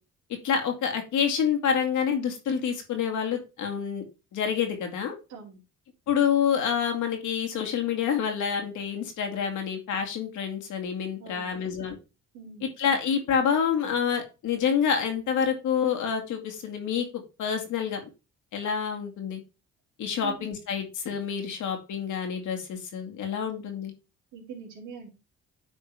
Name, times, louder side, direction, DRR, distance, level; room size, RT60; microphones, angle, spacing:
voice 1, 0.4-4.0 4.3-5.2 6.1-12.0 12.6-17.1 17.4-18.0 18.5-19.4 20.0-23.9, left 7 dB, 80° left, 4 dB, 2.3 m, -27 dB
voice 2, 5.3-5.6 11.2-11.7 12.3-12.7 20.2-20.5 24.3-25.1, right 5 dB, 75° right, -4 dB, 2.8 m, -43 dB
9.6 x 4.6 x 3.5 m, 0.29 s
cardioid pair, 90°, 30 cm